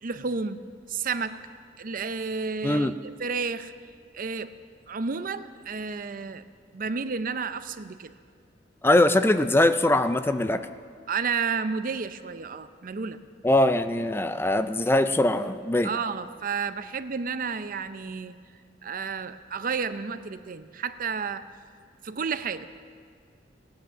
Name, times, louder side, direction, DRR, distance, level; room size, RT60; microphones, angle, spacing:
voice 1, 0.0-1.4 1.8-3.7 4.1-4.5 4.9-6.4 6.7-8.1 11.1-13.2 15.8-18.4 18.8-21.5 22.0-22.7, right 5 dB, 50° right, 11 dB, 0.6 m, -31 dB
voice 2, 2.6-2.9 8.8-10.6 13.4-15.9, left 1 dB, 15° left, 11 dB, 0.4 m, -22 dB
17.5 x 9.5 x 7.3 m, 2.2 s
head